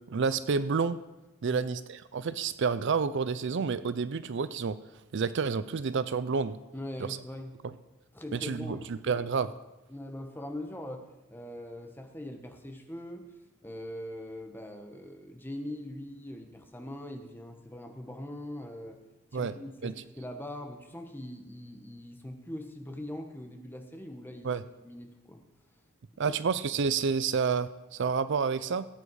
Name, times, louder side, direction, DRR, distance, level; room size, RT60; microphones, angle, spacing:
voice 1, 0.1-1.0 1.4-1.8 2.1-4.8 5.1-6.6 8.3-9.5 19.3-19.5 19.8-19.9 24.4-24.6 26.2-28.9, right 5 dB, 55° right, 14 dB, 0.5 m, -29 dB
voice 2, 6.7-7.5 8.1-8.9 9.9-13.2 13.6-19.0 19.3-25.4 26.2-26.4, left 1 dB, 10° left, 4 dB, 1.3 m, -42 dB
18.0 x 8.6 x 4.8 m, 1.0 s
head